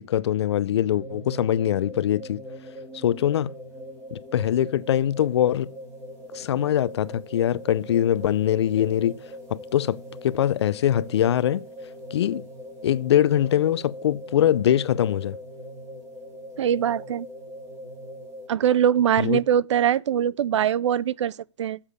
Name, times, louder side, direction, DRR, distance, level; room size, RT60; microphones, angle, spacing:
voice 1, 0.0-2.4 2.9-3.5 4.1-5.7 6.3-9.2 9.5-11.6 12.1-12.4 12.8-15.4 19.2-19.4, left 11 dB, 60° left, 0.6 m, -23 dB
sound 1, 0.9-18.5, equal, 15° right, 2.8 m, -41 dB
voice 2, 16.6-17.3 18.5-21.8, right 9 dB, 70° right, 0.5 m, -22 dB
8.3 x 7.3 x 8.6 m
hypercardioid pair, 160°, 16 cm